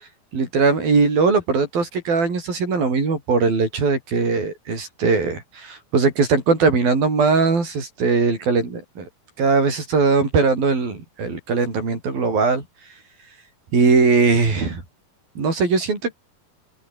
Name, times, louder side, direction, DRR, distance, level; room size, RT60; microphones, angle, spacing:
voice 1, 0.3-9.1 9.4-12.7 13.7-14.8 15.4-16.1, right 4 dB, 65° right, 8.7 m, -20 dB
open air
omnidirectional pair, 4.6 m